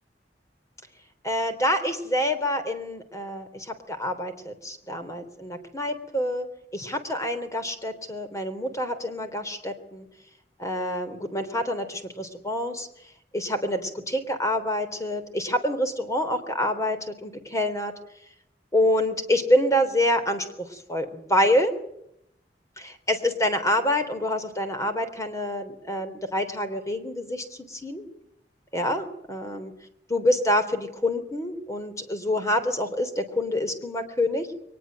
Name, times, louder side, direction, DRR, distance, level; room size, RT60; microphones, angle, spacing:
voice 1, 1.2-6.5 6.7-10.1 10.6-12.9 13.3-17.9 18.7-20.5 20.7-21.8 22.8-28.1 28.7-29.7 30.1-34.6, left 1 dB, 20° left, 8 dB, 3.5 m, -27 dB
23.0 x 20.0 x 7.7 m, 0.77 s
head